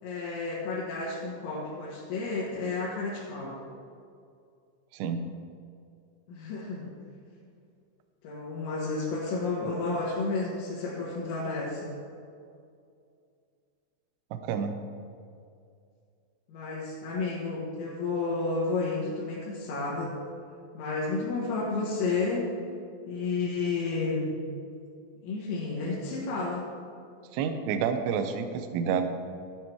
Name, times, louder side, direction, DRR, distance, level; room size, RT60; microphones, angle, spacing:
voice 1, 0.0-3.6 6.3-6.9 8.2-11.9 16.5-20.2 20.7-22.5 23.1-24.3 25.2-26.7, left 3 dB, 80° left, -8 dB, 4.4 m, -31 dB
voice 2, 14.3-14.8 27.3-29.1, right 7 dB, 80° right, 8 dB, 2.7 m, -29 dB
12.5 x 10.0 x 4.6 m, 2.4 s
omnidirectional pair, 5.9 m